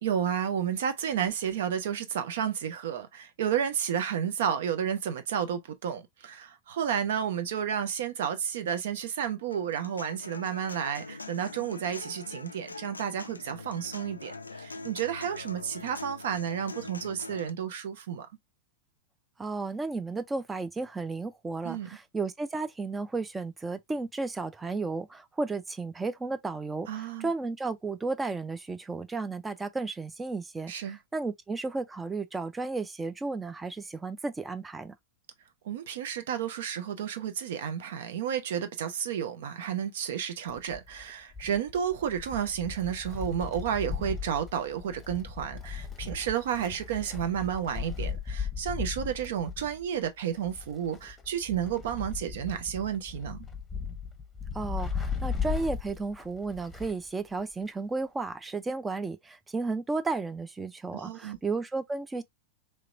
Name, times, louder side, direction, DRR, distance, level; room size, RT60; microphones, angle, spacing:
voice 1, 0.0-18.3 21.6-21.9 26.9-27.3 30.7-31.0 35.6-53.4 60.9-61.4, right 9 dB, 55° right, 0.7 m, -31 dB
Human voice / Acoustic guitar, 9.5-17.5, left 3 dB, 80° left, 0.3 m, -43 dB
voice 2, 19.4-34.9 54.5-62.2, right 3 dB, 10° right, 0.4 m, -33 dB
Wind, 40.5-57.1 57.4-57.5 58.5-58.6, left 6 dB, 15° left, 0.9 m, -37 dB
3.2 x 3.0 x 2.4 m
figure-of-eight pair, 90°, 0 cm